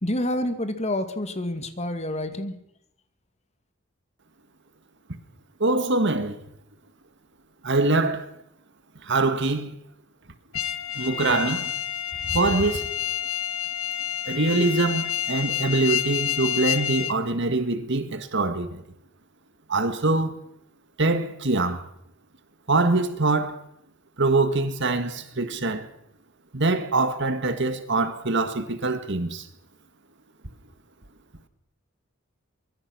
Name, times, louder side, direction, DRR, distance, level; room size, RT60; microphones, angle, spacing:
voice 1, 0.0-2.6, left 1 dB, 30° left, 2.3 m, -28 dB
voice 2, 5.6-6.4 7.6-8.3 9.0-9.8 11.0-11.7 12.3-12.9 14.3-18.8 19.7-20.4 21.0-21.8 22.7-23.7 24.2-25.9 26.5-29.5, right 2 dB, 60° right, 2.0 m, -24 dB
sound 1, 10.5-17.2, left 11 dB, 85° left, 1.2 m, -29 dB
24.5 x 22.5 x 6.3 m
head